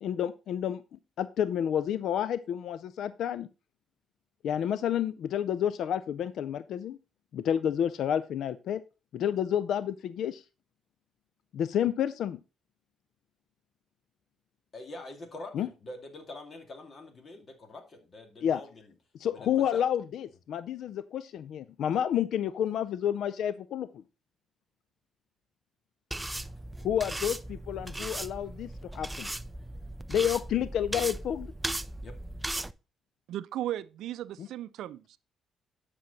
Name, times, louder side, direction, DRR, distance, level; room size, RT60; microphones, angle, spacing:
voice 1, 0.0-3.5 4.4-7.0 7.3-8.8 9.1-10.4 11.5-12.4 15.5-15.7 18.4-18.6 19.2-24.0 26.8-29.3 30.1-31.5 34.4-34.5, left 9 dB, 75° left, 0.4 m, -30 dB
voice 2, 14.7-18.9 19.3-19.8 32.0-32.2, left 2 dB, 40° left, 2.2 m, -45 dB
sound 1, 26.1-32.7, right 1 dB, 10° right, 0.4 m, -37 dB
voice 3, 33.3-35.2, right 12 dB, 80° right, 0.4 m, -36 dB
9.4 x 6.0 x 3.9 m
cardioid pair, 90°, 0 cm